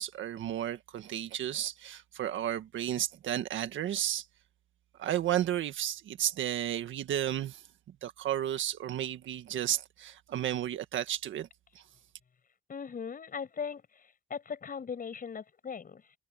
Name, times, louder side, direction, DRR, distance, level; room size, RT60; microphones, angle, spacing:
voice 1, 0.0-4.3 5.0-7.6 8.0-11.5 11.8-11.9, right 11 dB, 75° right, 1.8 m, -33 dB
voice 2, 12.7-16.1, left 6 dB, 45° left, 7.7 m, -39 dB
cardioid pair, 90°, 20 cm